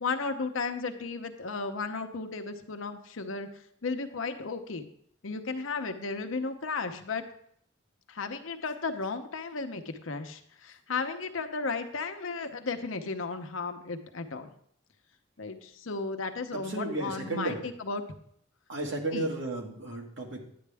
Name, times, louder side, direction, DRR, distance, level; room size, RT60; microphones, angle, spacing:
voice 1, 0.0-3.5 3.8-4.9 5.2-7.2 8.1-14.5 15.4-18.0 19.1-19.3, left 4 dB, 85° left, 6 dB, 0.8 m, -34 dB
voice 2, 16.7-17.6 18.7-20.5, right 2 dB, 70° right, 1 dB, 1.8 m, -33 dB
10.5 x 8.6 x 3.5 m, 0.67 s
head